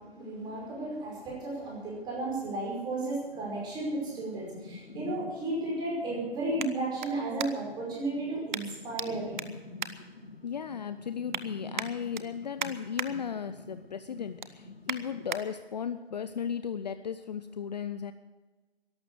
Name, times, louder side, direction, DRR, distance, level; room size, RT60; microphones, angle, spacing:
voice 1, 0.0-9.3, right 2 dB, 15° right, -3 dB, 5.3 m, -34 dB
sound 1, 3.2-15.3, left 2 dB, 70° left, 4.9 m, -48 dB
sound 2, 4.0-7.9 8.5-9.1 9.3-10.7 11.0-11.4 11.7-13.1 13.5-13.8 14.1-15.4 16.0-16.1, right 7 dB, 50° right, 1.0 m, -39 dB
voice 2, 10.4-18.1, left 7 dB, 40° left, 11 dB, 0.6 m, -36 dB
13.0 x 11.5 x 8.0 m, 1.3 s
figure-of-eight pair, 145°, 32 cm